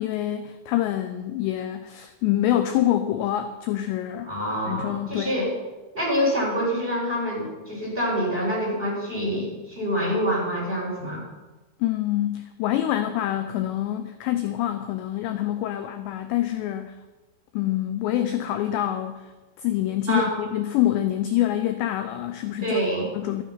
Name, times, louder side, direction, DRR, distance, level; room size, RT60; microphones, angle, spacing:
voice 1, 0.0-4.4 4.7-5.4 11.8-17.0 17.5-19.3 19.6-22.8 23.1-23.4, left 12 dB, 80° left, 8 dB, 2.6 m, -26 dB
voice 2, 4.3-5.5 5.9-11.2 20.1-20.3 22.6-23.1, equal, 10° right, -4 dB, 4.5 m, -26 dB
13.5 x 12.5 x 5.8 m, 1.1 s
omnidirectional pair, 5.8 m